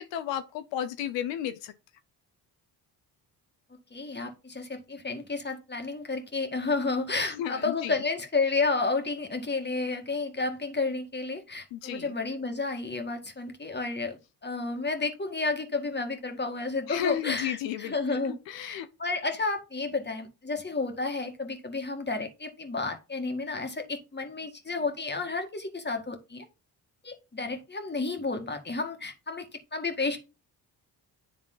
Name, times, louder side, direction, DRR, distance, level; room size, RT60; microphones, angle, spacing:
voice 1, 0.0-1.7 7.2-7.9 11.7-12.1 16.9-18.9, left 10 dB, 85° left, 0.7 m, -33 dB
voice 2, 3.9-26.5 27.0-30.2, left 3 dB, 25° left, 1.9 m, -31 dB
10.5 x 3.5 x 3.9 m
supercardioid pair, 65°, 43 cm